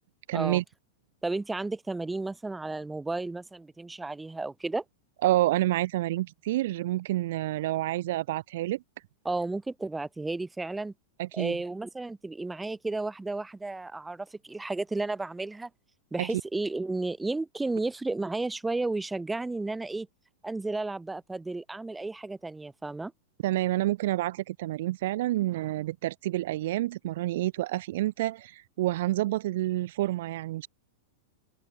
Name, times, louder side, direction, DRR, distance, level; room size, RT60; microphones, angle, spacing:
voice 1, 0.3-0.6 5.2-8.8 11.2-11.6 16.2-16.3 23.4-30.7, right 16 dB, 65° right, 0.7 m, -28 dB
voice 2, 1.2-4.8 9.2-10.9 11.3-15.7 16.1-20.1 20.4-23.1, right 2 dB, 10° right, 1.5 m, -33 dB
open air
hypercardioid pair, 120°, 0 cm